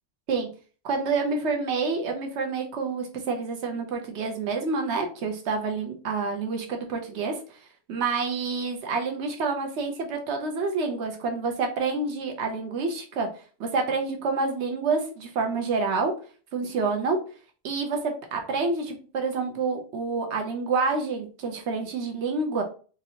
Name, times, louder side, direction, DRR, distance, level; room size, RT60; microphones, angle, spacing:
voice 1, 0.8-7.4 7.9-13.3 13.6-16.1 16.5-17.2 17.6-22.6, right 4 dB, 85° right, 3 dB, 1.1 m, -28 dB
4.4 x 2.6 x 2.8 m, 0.38 s
omnidirectional pair, 1.1 m